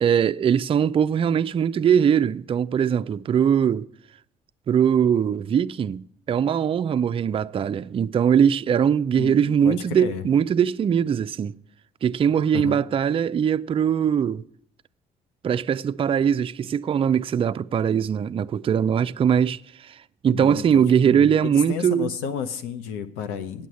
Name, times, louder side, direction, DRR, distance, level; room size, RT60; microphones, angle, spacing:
voice 1, 0.0-3.9 4.7-11.6 12.0-14.4 15.4-20.0 20.2-22.1, right 8 dB, 35° right, 0.4 m, -21 dB
voice 2, 9.2-10.3 12.5-12.9 20.2-23.7, left 7 dB, 85° left, 0.8 m, -32 dB
8.7 x 6.2 x 8.3 m
supercardioid pair, 65°, 16 cm